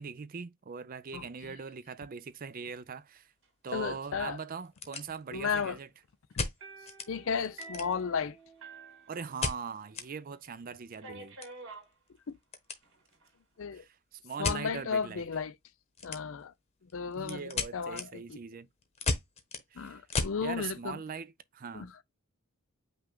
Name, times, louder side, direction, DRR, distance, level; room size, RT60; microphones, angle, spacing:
voice 1, 0.0-3.3 3.6-5.9 9.1-11.4 13.7-15.2 17.1-18.7 19.7-20.0 20.4-21.9, right 6 dB, 40° right, 0.4 m, -41 dB
sound 1, 2.3-2.5 2.9-3.0 3.6-3.7 3.9-4.0 4.5-5.5 6.4-7.1 7.4-8.2 9.4-10.1 10.4-10.5 10.8-12.8 13.1-13.4 14.4-14.6 16.0-16.5 16.9-20.4, left 3 dB, 30° left, 1.0 m, -35 dB
voice 2, 3.7-4.4 5.3-5.8 7.1-8.4 12.3-12.4 13.6-13.8 14.4-15.5 16.0-16.5 16.9-17.4 17.7-18.4 19.8-21.0 21.7-22.0, left 6 dB, 60° left, 0.5 m, -34 dB
sound 2, 6.6-9.8 10.1-10.2 11.0-11.9 12.8-13.3, right 3 dB, 60° right, 2.3 m, -49 dB
5.7 x 2.4 x 3.6 m
head